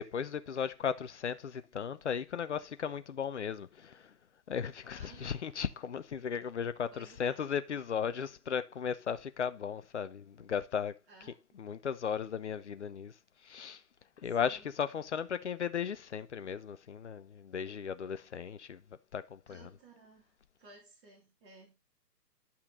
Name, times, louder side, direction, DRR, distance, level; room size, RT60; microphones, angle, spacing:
voice 1, 0.0-4.1 4.5-10.9 11.6-13.1 13.4-13.8 14.2-18.8 19.1-19.6, left 7 dB, 45° left, 0.8 m, -36 dB
voice 2, 4.9-5.4 6.9-7.4 11.1-11.6 14.2-14.7 19.5-21.8, right 3 dB, 35° right, 3.6 m, -57 dB
10.5 x 5.8 x 3.8 m
figure-of-eight pair, 140°, 49 cm